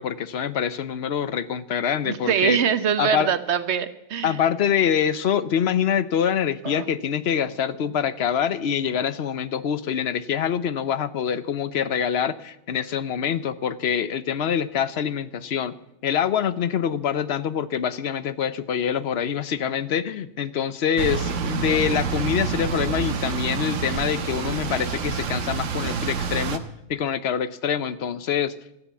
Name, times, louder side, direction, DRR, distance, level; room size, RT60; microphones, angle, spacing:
voice 1, 0.0-2.6 3.0-3.3 4.2-15.7 16.0-26.6 26.9-28.5, left 8 dB, 65° left, 15 dB, 0.9 m, -25 dB
voice 2, 2.0-4.4 6.6-6.8, right 8 dB, 70° right, 13 dB, 1.1 m, -23 dB
sound 1, 21.0-26.6, right 6 dB, 90° right, 1.3 m, -28 dB
13.5 x 10.0 x 8.3 m, 0.85 s
omnidirectional pair, 1.2 m